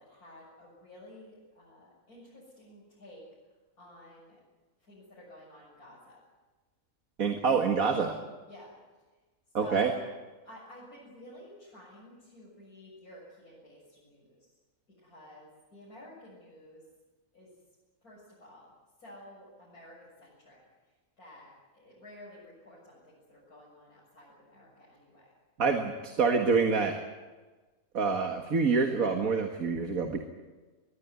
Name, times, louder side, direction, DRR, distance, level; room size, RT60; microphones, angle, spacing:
voice 1, 0.0-3.2 3.8-4.4 4.9-6.2 8.5-8.8 9.5-10.1 10.4-14.4 15.0-16.8 17.3-17.5 18.0-18.7 19.0-20.6 21.2-25.3, left 1 dB, 85° left, -6 dB, 7.8 m, -51 dB
voice 2, 7.2-8.2 9.5-9.9 25.6-26.9 27.9-30.2, right 5 dB, 70° right, 4 dB, 2.2 m, -26 dB
22.5 x 20.5 x 9.5 m, 1.2 s
omnidirectional pair, 1.5 m